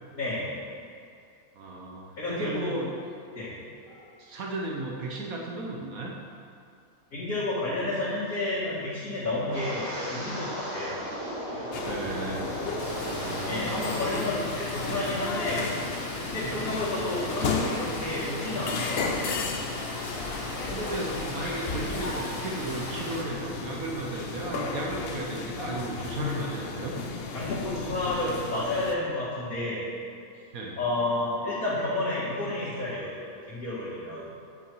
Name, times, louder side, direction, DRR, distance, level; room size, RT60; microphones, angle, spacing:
voice 1, 0.1-0.7 2.2-2.8 3.3-4.2 5.2-5.4 7.1-11.0 11.5-11.7 13.5-15.8 16.3-20.2 27.3-29.9 30.8-34.6, left 2 dB, 70° left, -12 dB, 2.6 m, -31 dB
voice 2, 1.5-2.9 4.2-6.1 11.8-12.5 12.9-13.7 16.4-16.6 20.7-26.9 30.5-30.8, right 2 dB, 75° right, -1 dB, 1.3 m, -35 dB
Wind, 9.4-14.3 14.6-15.0 15.4-15.7, equal, 50° right, 1.9 m, -36 dB
sound 1, 11.7-29.0, left 4 dB, 55° left, 0.8 m, -34 dB
Water, 12.8-23.2, left 1 dB, 25° left, 1.2 m, -38 dB
10.0 x 6.2 x 4.6 m, 2.4 s
omnidirectional pair, 1.5 m